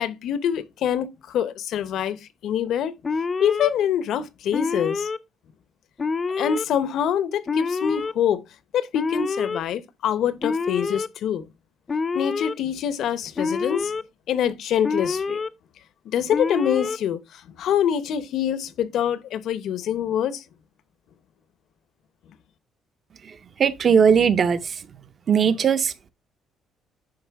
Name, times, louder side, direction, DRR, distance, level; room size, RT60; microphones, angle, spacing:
voice 1, 0.0-2.9 3.4-5.1 6.4-8.4 8.7-11.5 12.1-13.9 14.3-15.4 16.1-20.4, left 9 dB, 60° left, 0.7 m, -25 dB
Alarm, 3.0-3.7 4.5-5.2 6.0-6.7 7.5-8.1 8.9-9.6 10.4-11.1 11.9-12.5 13.4-14.0 14.8-15.5 16.3-17.0, left 4 dB, 20° left, 0.4 m, -26 dB
voice 2, 23.2-24.9 25.3-26.1, right 7 dB, 35° right, 0.6 m, -20 dB
10.5 x 4.2 x 3.4 m
cardioid pair, 170°, 0 cm